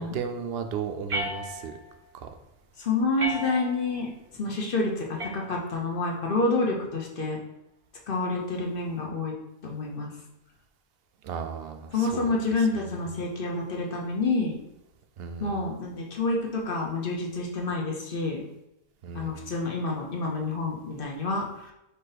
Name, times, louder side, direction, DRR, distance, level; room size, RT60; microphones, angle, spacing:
voice 1, 0.0-1.7 2.1-2.3 11.2-12.3 15.2-15.6 19.0-19.5, right 6 dB, 70° right, 7 dB, 0.8 m, -35 dB
sound 1, 1.1-2.0 3.2-4.0 5.2-6.0, equal, 40° right, 0.6 m, -34 dB
voice 2, 2.8-4.1 4.4-7.4 8.1-9.3 9.6-10.1 11.9-14.6 15.4-18.4 19.1-21.7, left 3 dB, 60° left, -1 dB, 1.0 m, -28 dB
4.7 x 2.6 x 4.0 m, 0.89 s
omnidirectional pair, 1.1 m